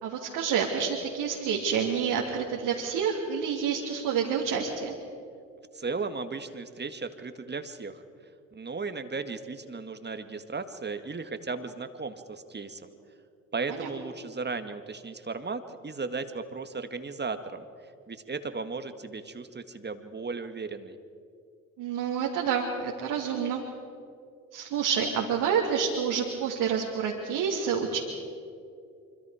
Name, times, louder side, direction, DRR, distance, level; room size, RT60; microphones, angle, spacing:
voice 1, 0.0-4.9 13.7-13.9 21.8-23.6 24.5-28.0, right 7 dB, 65° right, -2 dB, 3.0 m, -28 dB
voice 2, 5.7-8.0 8.5-12.9 13.5-21.0, right 4 dB, 25° right, 8 dB, 1.9 m, -36 dB
26.0 x 25.0 x 5.1 m, 2.4 s
hypercardioid pair, 55°, 40 cm